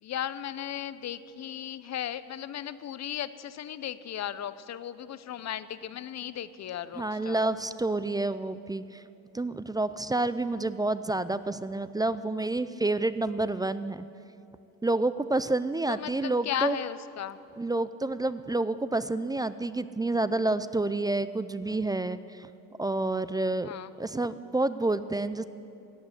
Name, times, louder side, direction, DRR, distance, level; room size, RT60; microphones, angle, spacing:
voice 1, 0.0-7.4 15.9-17.4 23.6-23.9, left 10 dB, 50° left, 15 dB, 0.7 m, -36 dB
voice 2, 6.9-9.0 9.3-14.0 14.8-16.8 17.6-22.5 22.8-23.7 24.0-25.4, right 2 dB, 10° right, 14 dB, 0.3 m, -29 dB
15.0 x 8.6 x 9.8 m, 2.7 s
cardioid pair, 100°, 35 cm